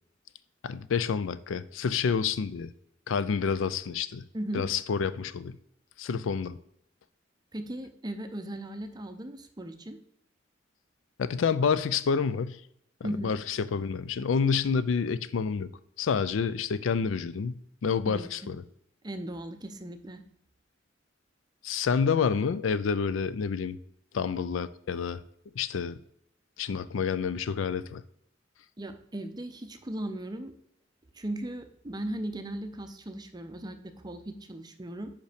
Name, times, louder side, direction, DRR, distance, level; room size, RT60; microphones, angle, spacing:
voice 1, 0.6-2.7 3.1-4.3 4.5-5.6 6.0-6.6 11.2-12.6 13.0-15.7 16.0-17.5 17.8-18.6 21.6-23.8 24.1-25.2 25.6-25.9 26.6-28.0, left 6 dB, 85° left, 0.4 m, -28 dB
voice 2, 7.5-10.0 13.0-13.3 18.1-18.5 19.0-20.2 28.8-30.5 31.1-35.1, right 1 dB, 20° right, 0.6 m, -37 dB
5.3 x 5.2 x 5.0 m
head